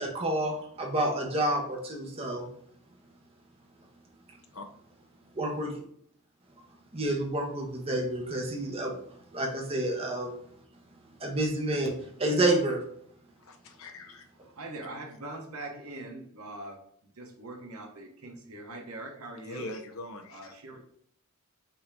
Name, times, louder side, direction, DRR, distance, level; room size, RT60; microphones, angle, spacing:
voice 1, 0.0-2.5 5.3-5.7 6.9-9.0 9.3-10.3 11.2-12.8, right 1 dB, 25° right, 0 dB, 1.0 m, -29 dB
voice 2, 13.4-14.3 19.5-20.5, left 1 dB, 70° left, 5 dB, 0.7 m, -42 dB
voice 3, 14.4-16.8 17.1-19.7 20.3-20.9, right 2 dB, 90° right, 2 dB, 1.1 m, -42 dB
5.4 x 2.8 x 3.4 m, 0.66 s
head